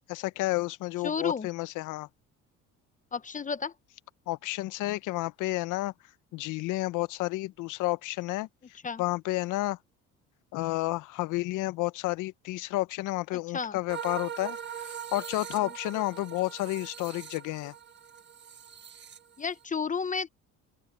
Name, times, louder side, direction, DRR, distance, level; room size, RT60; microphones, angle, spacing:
voice 1, 0.1-2.1 4.3-5.9 6.3-8.5 9.0-9.8 10.5-17.7, left 19 dB, 75° left, 0.8 m, -31 dB
voice 2, 1.0-1.5 3.1-3.7 8.8-9.0 13.5-13.8 19.4-20.3, left 5 dB, 25° left, 0.9 m, -31 dB
sound 1, 13.9-19.6, right 8 dB, 35° right, 1.4 m, -41 dB
open air
cardioid pair, 110°, 31 cm